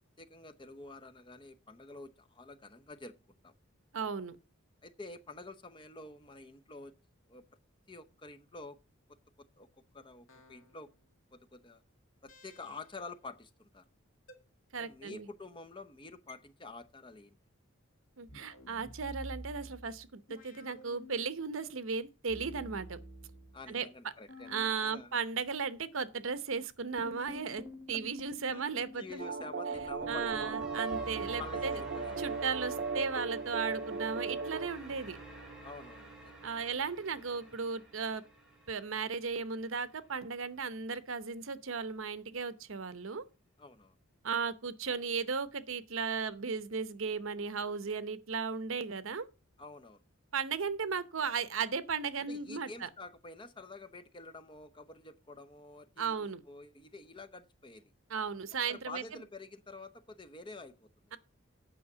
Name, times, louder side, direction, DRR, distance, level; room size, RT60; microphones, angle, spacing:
voice 1, 0.2-3.2 3.4-3.5 4.8-6.9 7.3-7.4 7.9-8.8 9.6-9.7 9.9-10.9 11.3-11.8 12.2-13.8 14.8-17.4 23.5-25.1 28.5-30.7 31.4-32.3 32.7-32.8 35.6-36.5 43.6-44.0 49.6-50.0 52.3-56.1 56.5-57.8 58.7-61.1, left 3 dB, 20° left, 0.7 m, -48 dB
voice 2, 3.9-4.4 14.7-15.3 18.2-23.0 23.7-23.9 24.5-29.2 30.1-31.8 32.2-35.2 36.4-38.2 38.7-43.2 44.2-49.3 50.3-52.9 56.0-56.4 58.1-59.2, right 5 dB, 70° right, 0.8 m, -36 dB
sound 1, 10.3-11.0 12.3-13.1 14.3-14.4 16.3-16.4 18.3-21.7 22.3-23.7 24.3-24.7, right 1 dB, 75° left, 2.1 m, -50 dB
sound 2, 27.0-39.2, right 2 dB, 5° right, 2.6 m, -48 dB
sound 3, 29.2-34.7, right 4 dB, 45° right, 0.5 m, -37 dB
8.5 x 5.7 x 6.6 m
head